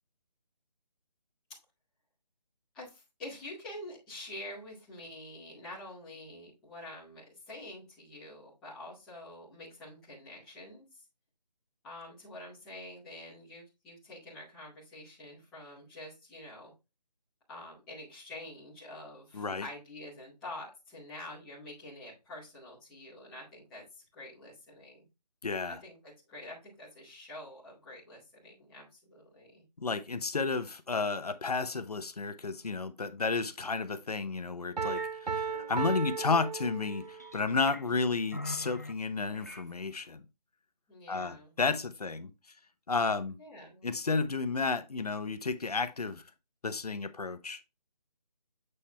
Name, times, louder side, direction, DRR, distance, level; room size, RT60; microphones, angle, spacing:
voice 1, 2.7-10.8 11.8-16.7 17.5-23.8 24.1-25.0 25.8-29.6 40.9-41.5 43.4-43.9, left 1 dB, ahead, 0.8 m, -47 dB
voice 2, 19.3-19.7 25.4-25.8 29.8-40.2 41.1-42.3 42.9-43.4 43.8-46.2 46.6-47.6, left 4 dB, 65° left, 1.0 m, -32 dB
sound 1, 34.8-35.1 35.4-35.9 36.9-37.8 38.3-38.9 39.3-39.7, equal, 25° left, 0.4 m, -42 dB
Piano, 34.8-37.3, right 5 dB, 75° right, 0.7 m, -35 dB
8.3 x 4.3 x 3.4 m
figure-of-eight pair, 175°, 21 cm